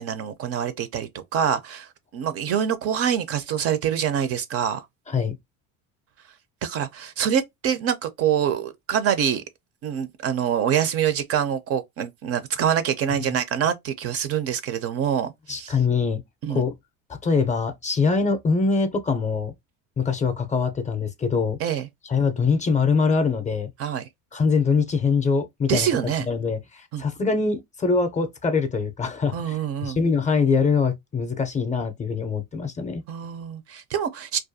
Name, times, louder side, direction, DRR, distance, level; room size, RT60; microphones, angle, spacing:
voice 1, 0.0-1.9 2.1-4.8 6.6-9.4 9.8-15.7 16.4-16.6 21.6-21.9 23.8-24.0 25.7-26.3 26.9-27.0 29.3-30.0 33.1-34.4, right 8 dB, 45° right, 0.4 m, -25 dB
voice 2, 15.5-16.2 16.5-16.7 17.2-19.5 20.0-21.6 22.0-23.7 24.3-25.9 26.3-33.0, left 5 dB, 20° left, 0.4 m, -23 dB
2.4 x 2.2 x 2.5 m
cardioid pair, 115°, 34 cm